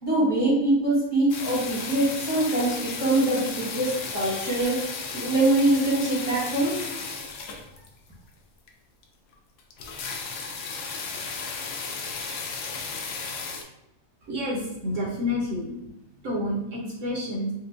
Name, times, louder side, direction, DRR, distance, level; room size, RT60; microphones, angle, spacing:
voice 1, 0.0-6.8, right 2 dB, 20° left, -7 dB, 0.8 m, -23 dB
sound 1, 1.3-8.1 8.7-8.8 9.0-9.1 9.3-9.4 9.6-13.6, left 4 dB, 70° left, 0.9 m, -34 dB
voice 2, 14.2-15.8 16.2-17.5, left 1 dB, 60° right, -3 dB, 1.0 m, -29 dB
4.4 x 2.2 x 2.5 m, 0.86 s
omnidirectional pair, 1.7 m